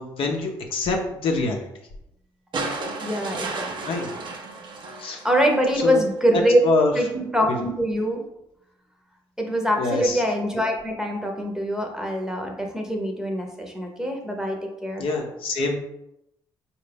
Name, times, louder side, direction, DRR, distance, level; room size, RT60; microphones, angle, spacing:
voice 1, 0.0-1.7 3.9-4.1 5.0-5.2 5.8-6.0 6.3-7.1 7.5-7.7 9.8-10.2 15.0-15.7, left 3 dB, 60° left, 1 dB, 0.7 m, -25 dB
sound 1, 2.5-5.8 7.2-7.3, right 3 dB, 50° right, 0.7 m, -33 dB
voice 2, 3.0-4.0 5.0-6.6 7.0-8.2 9.4-15.0, equal, 5° right, 2 dB, 0.9 m, -24 dB
3.9 x 2.5 x 3.4 m, 0.83 s
hypercardioid pair, 55°, 11 cm